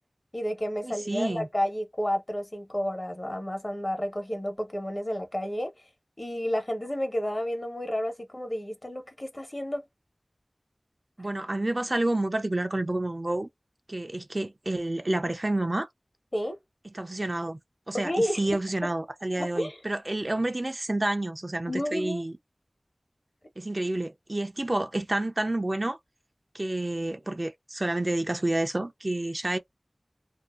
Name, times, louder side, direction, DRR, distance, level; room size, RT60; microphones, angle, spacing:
voice 1, 0.3-5.7 6.2-9.8 16.3-16.6 17.9-18.9 19.4-19.8 21.7-22.2, equal, 45° left, 1.1 m, -31 dB
voice 2, 0.8-1.5 11.2-13.5 13.9-15.9 16.9-17.6 17.9-22.3 23.6-26.0 26.5-29.6, right 1 dB, 50° right, 0.5 m, -29 dB
2.7 x 2.1 x 2.3 m
wide cardioid pair, 45°, 0 cm